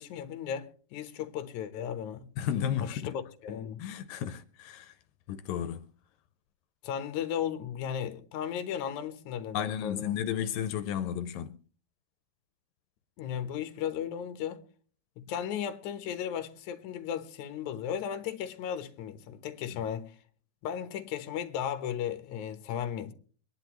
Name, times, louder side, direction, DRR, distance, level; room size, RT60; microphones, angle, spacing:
voice 1, 0.0-2.3 2.8-3.8 6.8-10.2 13.2-14.6 15.2-20.1 20.6-23.1, left 9 dB, 65° left, 2.4 m, -35 dB
voice 2, 2.4-3.1 3.8-5.0 5.3-5.9 9.5-11.6 19.7-19.8, left 9 dB, 80° left, 2.4 m, -33 dB
24.5 x 10.5 x 3.0 m
omnidirectional pair, 3.9 m